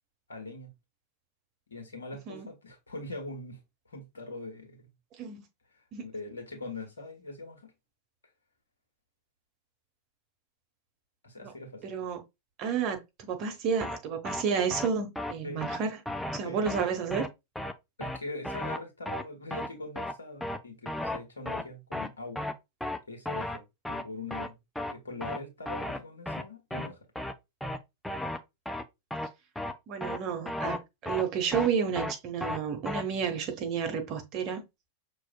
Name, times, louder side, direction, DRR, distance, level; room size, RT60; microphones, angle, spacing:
voice 1, 0.3-0.7 1.7-3.6 3.9-4.9 5.7-7.7 11.2-11.8 15.4-15.6 16.4-16.6 18.0-22.5 23.1-24.6 24.9-27.1, left 2 dB, 75° left, 1.4 m, -42 dB
voice 2, 11.8-12.2 12.6-16.0 16.3-17.3 29.9-34.6, right 6 dB, 40° right, 1.0 m, -31 dB
sound 1, 13.8-14.0 14.2-14.4 14.7-14.9 15.2-15.3 15.6-15.8 16.1-16.4 16.7-16.8 17.1-17.3 17.6-17.7 18.0-18.2 18.4-18.8 19.1-19.2 19.5-19.7 20.0-20.1 20.4-20.6 20.9-21.2 21.5-21.6 21.9-22.1 22.4-22.5 22.8-23.0 23.3-23.6 23.8-24.0 24.3-24.5 24.8-24.9 25.2-25.4 25.7-26.0 26.3-26.4 26.7-26.9 27.2-27.3 27.6-27.8 28.0-28.4 28.7-28.8 29.1-29.3 29.6-29.7 30.0-30.2 30.5-30.8 31.1-31.2 31.5-31.7 32.0-32.1 32.4-32.6 32.9-33.0, left 1 dB, 5° left, 0.5 m, -34 dB
6.0 x 3.1 x 2.2 m
figure-of-eight pair, 90°, 0 cm